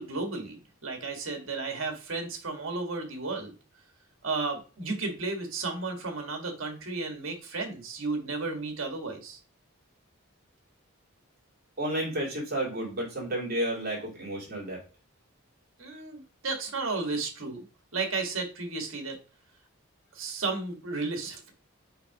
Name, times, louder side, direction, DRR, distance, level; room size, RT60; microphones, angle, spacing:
voice 1, 0.0-3.5 4.2-9.4 15.8-17.6 17.9-19.2 20.1-21.5, right 3 dB, 70° right, 3 dB, 1.6 m, -33 dB
voice 2, 11.8-14.8, right 1 dB, 45° right, -4 dB, 3.0 m, -31 dB
5.8 x 3.7 x 4.8 m, 0.34 s
head